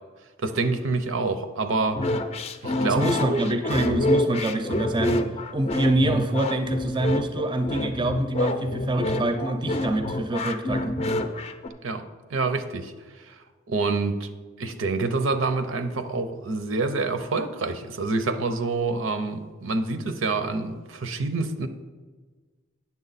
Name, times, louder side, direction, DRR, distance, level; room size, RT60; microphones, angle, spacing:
voice 1, 0.4-2.0 2.6-3.5 11.8-12.0 12.3-12.9 13.3-13.4 13.7-14.3 14.6-21.7, right 3 dB, 75° right, 9 dB, 0.7 m, -27 dB
sound 1, 1.9-11.7, left 1 dB, 30° left, 0.5 m, -27 dB
voice 2, 2.9-5.2 5.5-10.9, right 1 dB, 25° right, 7 dB, 0.5 m, -25 dB
8.9 x 7.1 x 4.1 m, 1.4 s
head